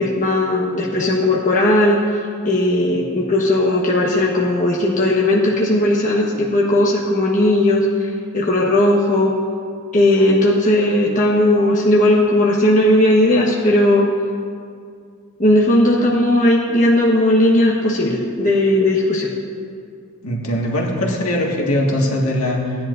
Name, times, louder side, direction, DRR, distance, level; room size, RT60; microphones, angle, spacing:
voice 1, 0.0-2.0 2.4-8.1 8.3-9.3 9.9-14.1 15.4-19.3, left 1 dB, 35° left, -4 dB, 1.2 m, -16 dB
voice 2, 20.2-22.8, left 1 dB, 75° left, -2 dB, 1.9 m, -20 dB
17.5 x 10.5 x 2.6 m, 2.2 s
head